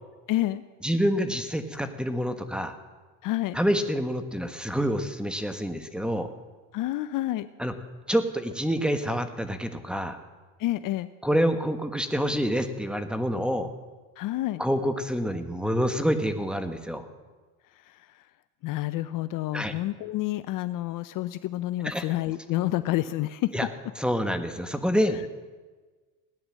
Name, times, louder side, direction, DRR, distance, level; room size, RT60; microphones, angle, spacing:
voice 1, 0.3-0.6 3.2-3.6 6.7-7.5 10.6-11.1 14.2-14.6 17.7-18.3 18.6-23.5, left 16 dB, 50° left, 14 dB, 0.6 m, -29 dB
voice 2, 0.8-2.8 3.5-6.3 7.6-7.7 8.1-10.2 11.2-13.7 14.6-17.0 19.5-19.7 21.8-22.0 23.5-23.7 24.0-25.2, equal, ahead, 8 dB, 1.3 m, -27 dB
17.0 x 9.7 x 7.4 m, 1.3 s
supercardioid pair, 100°, 42 cm